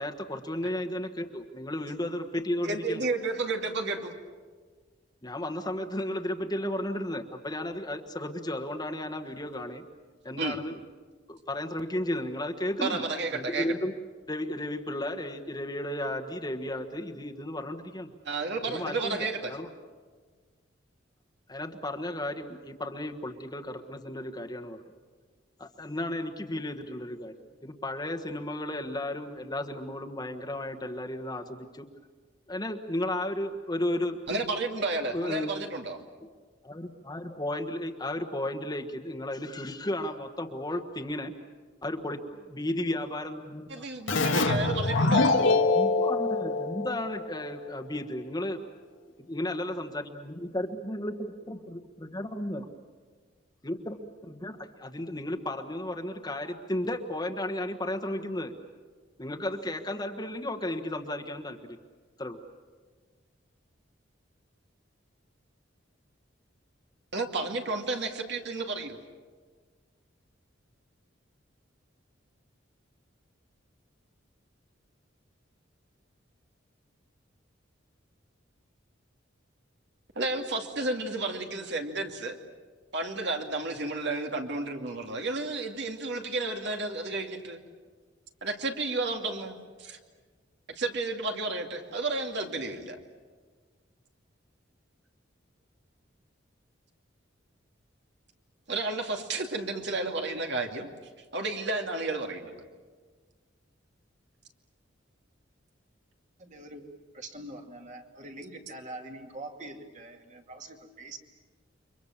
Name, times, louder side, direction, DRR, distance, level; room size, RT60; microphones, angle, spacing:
voice 1, 0.0-3.1 5.2-9.8 10.2-10.8 11.3-13.9 14.3-18.1 18.6-19.7 21.5-24.8 25.6-27.3 27.6-31.8 32.5-34.2 34.7-34.8 35.1-35.5 36.6-41.3 41.8-43.9 44.5-44.6 45.5-48.8 49.2-52.7 53.6-58.5 59.2-61.6 62.2-62.4, left 1 dB, 20° left, 3 dB, 1.4 m, -34 dB
voice 2, 2.6-4.1 10.3-10.6 12.8-13.7 18.2-19.6 34.3-36.0 43.7-45.4 67.1-69.0 80.2-82.4 82.9-87.6 88.4-90.0 90.7-93.0 98.7-100.9 101.3-102.5, right 3 dB, 65° right, 3 dB, 2.5 m, -32 dB
Keyboard (musical), 44.1-47.5, left 3 dB, 80° left, 1.9 m, -25 dB
voice 3, 106.4-106.9 107.1-111.2, right 2 dB, 40° right, 3 dB, 2.5 m, -44 dB
29.5 x 24.5 x 7.3 m, 1.5 s
head